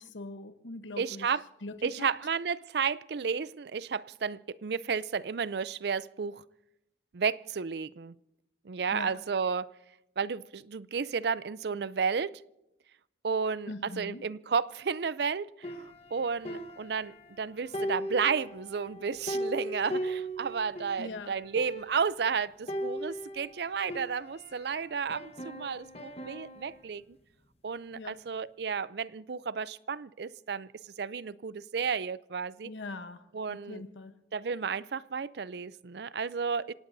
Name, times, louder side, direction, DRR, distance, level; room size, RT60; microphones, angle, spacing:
voice 1, 0.0-1.3 1.6-2.1 8.9-9.2 13.7-14.3 21.0-21.4 27.9-28.2 32.6-34.2, left 2 dB, 85° left, 1.0 m, -42 dB
voice 2, 1.0-1.4 1.8-6.4 7.1-8.1 8.7-9.7 10.2-12.4 13.2-13.7 14.0-15.7 16.1-27.0 27.6-32.7 33.3-33.8 34.3-36.7, right 6 dB, 60° right, 0.4 m, -32 dB
sound 1, 15.6-17.4 17.7-21.0 21.3-21.4 21.6-22.2 22.7-24.7 25.1-26.8, right 1 dB, 35° left, 1.1 m, -38 dB
27.0 x 17.5 x 2.7 m
head